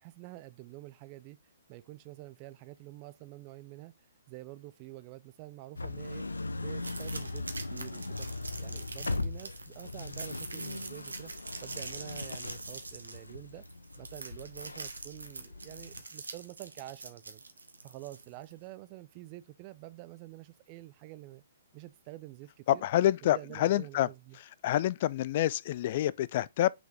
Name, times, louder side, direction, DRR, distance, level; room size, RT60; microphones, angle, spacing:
voice 1, 0.0-1.4 1.7-3.9 4.3-6.2 6.5-8.3 8.6-11.3 11.6-13.6 14.0-17.4 17.8-21.4 21.7-22.9 23.2-24.4, right 17 dB, 35° right, 0.5 m, -48 dB
sound 1, 5.8-16.0, left 2 dB, 80° left, 0.7 m, -39 dB
sound 2, 6.8-18.5, right 3 dB, 75° right, 1.2 m, -44 dB
voice 2, 22.7-24.1 24.6-26.7, left 13 dB, 45° left, 0.3 m, -27 dB
6.0 x 5.1 x 3.4 m
figure-of-eight pair, 125°, 0 cm